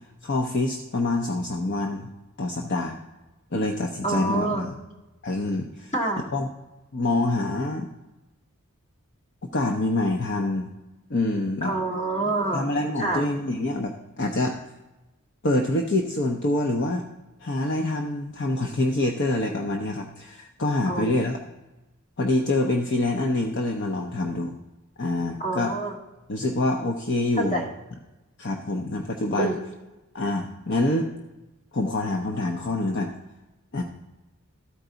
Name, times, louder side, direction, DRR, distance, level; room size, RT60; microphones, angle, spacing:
voice 1, 0.2-2.1 2.4-3.0 3.5-4.7 5.2-5.9 6.3-6.5 6.9-7.9 9.4-10.7 11.1-11.7 12.5-14.6 15.4-17.0 17.4-21.4 22.2-24.5 25.0-25.7 26.3-27.6 28.4-29.5 30.1-31.1 31.7-33.1 33.7-33.8, left 2 dB, 55° left, 2 dB, 0.7 m, -26 dB
voice 2, 4.0-4.7 5.9-6.3 11.6-12.7 13.0-13.2 20.9-21.3 25.4-25.9 27.4-27.7 29.4-29.6, right 2 dB, 30° left, -2 dB, 1.8 m, -27 dB
13.5 x 4.6 x 3.9 m, 1.0 s
head